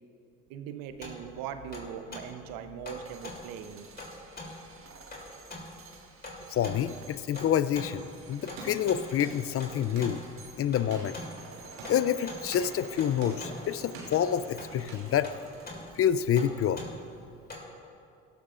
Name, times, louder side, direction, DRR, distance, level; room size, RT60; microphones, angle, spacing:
voice 1, 0.5-3.9 6.4-6.5, right 8 dB, 75° right, 9 dB, 0.9 m, -40 dB
sound 1, 0.9-17.6, left 2 dB, 30° left, 3.2 m, -44 dB
sound 2, 2.9-17.0, right 4 dB, 40° right, 1.6 m, -52 dB
voice 2, 6.5-10.2 10.6-11.2 11.9-15.3 16.0-16.8, left 9 dB, 45° left, 15 dB, 0.5 m, -28 dB
sound 3, 8.4-15.8, right 2 dB, 90° right, 2.8 m, -47 dB
15.5 x 13.0 x 2.5 m, 2.5 s
hypercardioid pair, 60°, 34 cm